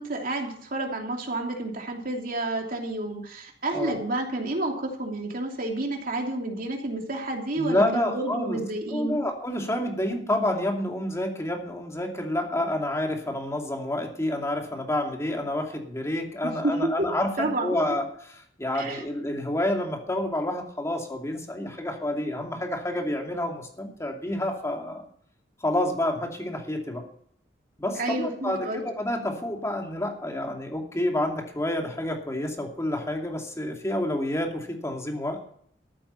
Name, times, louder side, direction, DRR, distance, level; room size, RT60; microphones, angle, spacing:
voice 1, 0.0-9.2 16.4-17.1 17.4-17.8 18.7-19.0 27.9-28.8, right 2 dB, 55° right, 2 dB, 2.9 m, -30 dB
voice 2, 7.6-8.6 8.9-25.1 25.6-27.0 27.8-35.4, left 1 dB, 15° left, 2 dB, 2.5 m, -29 dB
14.0 x 8.8 x 5.7 m, 0.62 s
head